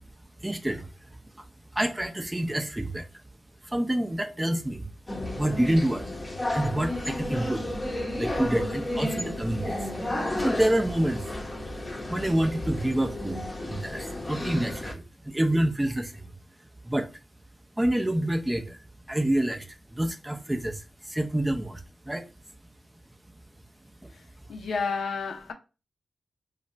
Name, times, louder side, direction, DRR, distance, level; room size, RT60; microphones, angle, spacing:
voice 1, 0.4-0.9 1.3-1.4 1.7-3.1 3.6-4.9 5.4-6.1 6.5-7.7 8.2-9.9 10.4-11.2 12.1-16.3 16.8-17.1 17.8-18.8 19.1-19.7 19.9-21.8 22.0-22.2, right 1 dB, 15° right, 0.6 m, -27 dB
sound 1, 5.1-14.9, left 1 dB, 30° left, 0.7 m, -32 dB
voice 2, 24.5-25.5, left 4 dB, 85° left, 0.5 m, -30 dB
2.4 x 2.1 x 3.9 m
cardioid pair, 45°, 0 cm